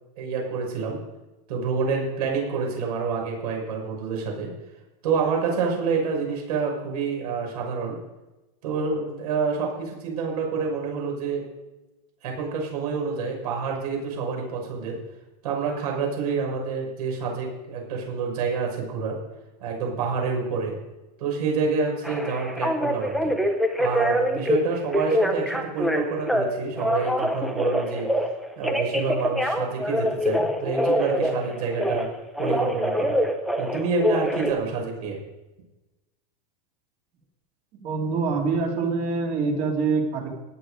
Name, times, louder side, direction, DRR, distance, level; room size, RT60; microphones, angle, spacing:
voice 1, 0.2-1.0 1.5-4.5 5.0-8.0 8.6-11.4 12.2-15.0 15.4-19.1 19.6-20.7 21.2-23.3 23.8-28.1 28.6-32.1 32.4-33.2 33.6-35.2, right 5 dB, 65° right, 0 dB, 6.2 m, -28 dB
Telephone, 22.0-24.6 24.9-26.4 26.8-28.3 28.6-32.1 32.4-34.5, equal, ahead, 0.8 m, -24 dB
voice 2, 37.8-40.3, right 4 dB, 30° right, 1 dB, 2.8 m, -25 dB
17.5 x 11.0 x 5.1 m, 1.1 s
supercardioid pair, 175°, 21 cm